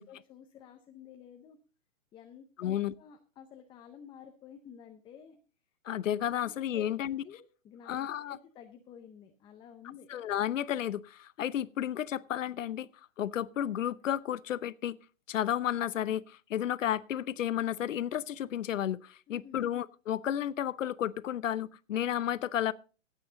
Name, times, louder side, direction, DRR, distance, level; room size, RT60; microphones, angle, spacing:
voice 1, 0.0-1.6 2.1-2.7 3.0-5.4 6.4-8.0 8.3-10.1 19.3-19.6, left 8 dB, 10° left, 0.7 m, -52 dB
voice 2, 2.6-2.9 5.8-7.2 7.9-8.4 10.1-12.9 13.2-15.0 15.3-22.7, left 11 dB, 75° left, 0.8 m, -32 dB
15.5 x 8.6 x 3.9 m
hypercardioid pair, 140°, 39 cm